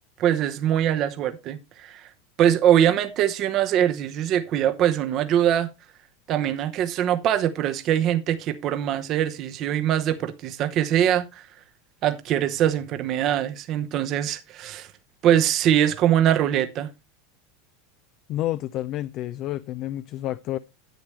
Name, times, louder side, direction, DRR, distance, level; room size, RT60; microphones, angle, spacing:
voice 1, 0.2-2.1 2.4-5.7 6.3-11.5 12.0-14.9 15.2-16.9, right 10 dB, 45° right, 0.9 m, -22 dB
voice 2, 18.3-20.6, left 14 dB, 50° left, 0.4 m, -29 dB
10.5 x 8.1 x 3.2 m
hypercardioid pair, 95°, 0 cm